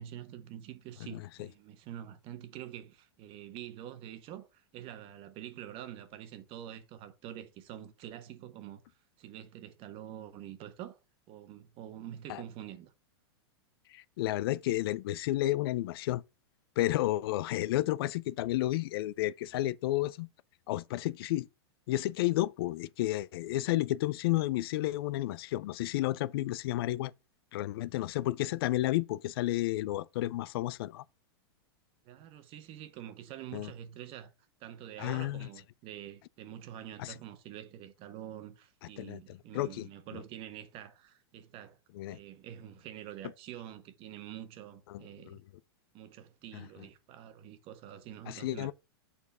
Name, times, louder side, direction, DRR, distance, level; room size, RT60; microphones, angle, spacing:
voice 1, 0.0-8.8 9.2-11.0 11.3-12.9 32.0-34.3 34.6-41.8 42.1-45.4 45.9-48.7, right 11 dB, 40° right, 1.3 m, -46 dB
voice 2, 13.9-16.2 16.8-20.3 20.7-21.5 21.9-27.1 27.5-31.0 33.5-33.7 35.0-35.5 37.0-37.1 39.0-39.9 41.9-42.2 44.9-45.4 48.3-48.7, left 16 dB, 65° left, 0.4 m, -31 dB
7.1 x 4.2 x 5.5 m
hypercardioid pair, 125°, 14 cm